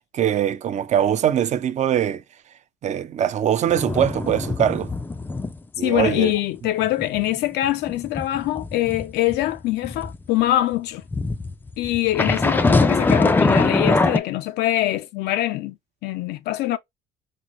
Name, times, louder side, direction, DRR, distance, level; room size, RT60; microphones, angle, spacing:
voice 1, 0.1-2.2 2.8-4.9 5.8-6.3, right 10 dB, 45° right, 0.5 m, -22 dB
sound 1, 3.7-5.6 5.9-6.2 6.5-10.2 11.1-14.2, left 3 dB, 10° left, 0.3 m, -22 dB
voice 2, 5.8-11.0 11.8-15.7 16.0-16.8, left 15 dB, 80° left, 0.4 m, -23 dB
5.0 x 2.0 x 2.9 m
cardioid pair, 110°, 17 cm